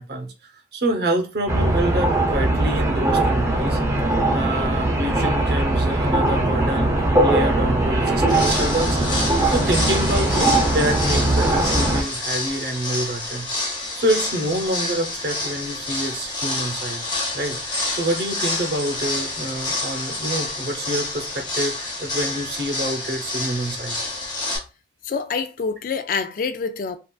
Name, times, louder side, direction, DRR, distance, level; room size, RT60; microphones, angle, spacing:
voice 1, 0.0-3.8 4.3-6.9 7.2-9.0 9.5-17.0 17.3-24.0, right 1 dB, 60° right, 0.7 m, -27 dB
sound 1, 1.5-12.0, right 2 dB, 15° right, 0.6 m, -20 dB
sound 2, 8.2-24.6, left 2 dB, 25° left, 0.9 m, -28 dB
voice 2, 25.0-27.0, left 5 dB, 50° left, 0.3 m, -26 dB
3.6 x 2.4 x 2.3 m
head